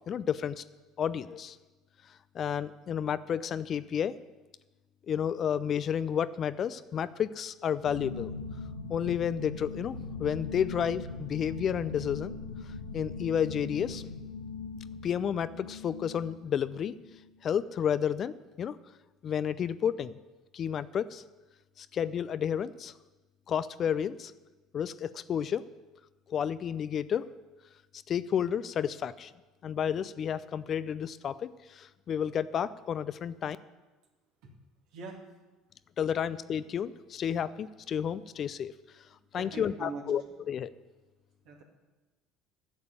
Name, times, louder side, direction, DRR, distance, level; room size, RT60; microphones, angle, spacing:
voice 1, 0.1-0.6 1.0-1.6 2.3-4.2 5.1-8.3 8.9-12.3 12.9-14.0 15.0-16.9 17.4-18.8 19.2-20.2 20.5-21.2 21.8-22.9 23.5-24.3 24.7-25.6 26.3-27.3 28.1-29.3 29.6-33.6 36.0-38.7 39.3-40.2 40.5-40.7, left 8 dB, 45° left, 15 dB, 0.4 m, -31 dB
sound 1, 7.8-17.3, left 4 dB, 85° left, 0.9 m, -41 dB
voice 2, 34.9-35.4 39.3-40.0 41.4-41.6, right 4 dB, 65° right, 0 dB, 2.3 m, -42 dB
10.5 x 6.9 x 8.8 m, 1.2 s
hypercardioid pair, 65°, 0 cm